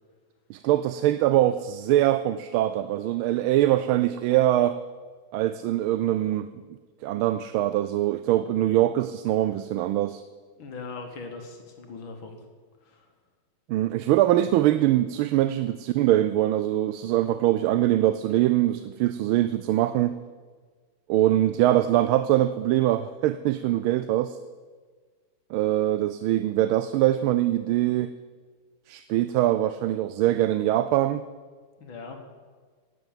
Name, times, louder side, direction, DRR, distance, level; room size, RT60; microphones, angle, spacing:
voice 1, 0.5-4.8 5.3-6.5 7.0-10.2 13.7-20.2 21.1-24.4 25.5-28.1 28.9-31.2, right 13 dB, 90° right, 13 dB, 1.4 m, -23 dB
voice 2, 10.6-12.4 12.8-13.1 31.8-32.2, left 4 dB, 70° left, 5 dB, 2.2 m, -40 dB
12.0 x 9.3 x 8.9 m, 1.5 s
omnidirectional pair, 2.2 m